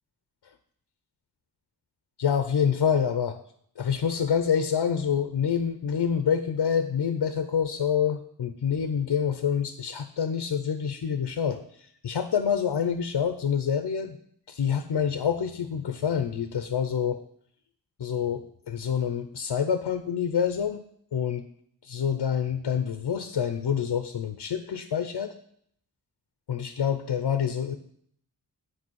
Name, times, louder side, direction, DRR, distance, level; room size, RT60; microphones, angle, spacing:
voice 1, 2.2-3.4 3.8-14.2 14.5-17.2 18.0-20.8 21.1-21.5 21.8-25.3 26.5-27.8, left 7 dB, 85° left, 9 dB, 0.6 m, -27 dB
8.7 x 4.8 x 6.2 m, 0.66 s
cardioid pair, 45°, 41 cm